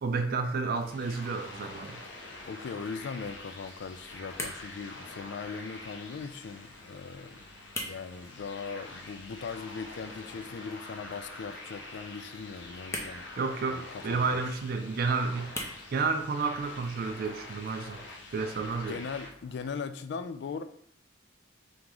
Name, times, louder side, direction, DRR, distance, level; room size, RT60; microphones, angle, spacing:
voice 1, 0.0-2.0 13.4-15.5 15.9-18.0 18.3-19.0, right 4 dB, 50° right, 6 dB, 0.4 m, -31 dB
sound 1, 0.7-19.3, left 2 dB, 75° left, 0.8 m, -46 dB
sound 2, 0.7-19.7, left 1 dB, 15° left, 0.6 m, -47 dB
voice 2, 2.4-7.5 7.9-13.3 13.7-14.4 18.8-20.6, left 5 dB, 60° left, 10 dB, 0.3 m, -39 dB
3.5 x 3.0 x 3.8 m, 0.65 s
head